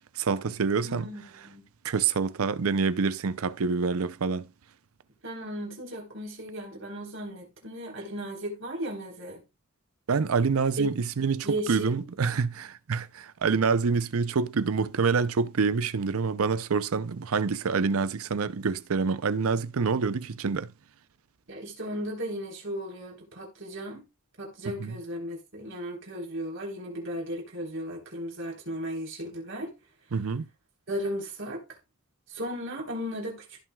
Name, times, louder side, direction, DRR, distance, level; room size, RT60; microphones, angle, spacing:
voice 1, 0.2-1.1 1.8-4.5 10.1-20.7 24.6-25.0 30.1-30.4, right 5 dB, 80° right, 0.6 m, -27 dB
voice 2, 0.8-1.6 5.2-9.4 10.8-10.9 11.4-12.0 21.5-24.0 24.4-29.7 30.9-31.6 32.3-33.4, equal, 65° right, 3.8 m, -35 dB
15.5 x 6.0 x 2.3 m
head